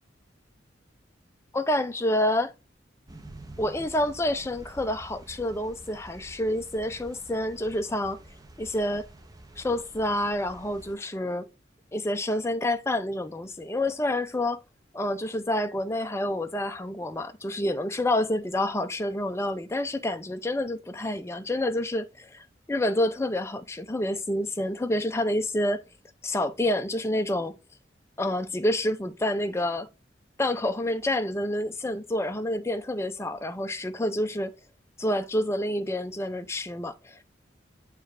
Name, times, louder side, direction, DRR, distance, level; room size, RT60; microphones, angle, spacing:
voice 1, 1.5-2.5 3.6-8.2 8.6-9.1 9.6-11.5 11.9-14.6 14.9-25.8 26.2-27.5 28.2-29.9 30.4-34.5 35.0-37.2, left 1 dB, 15° left, 0.5 m, -28 dB
sound 1, 3.1-11.0, right 1 dB, 20° right, 0.7 m, -48 dB
6.7 x 3.2 x 4.9 m
head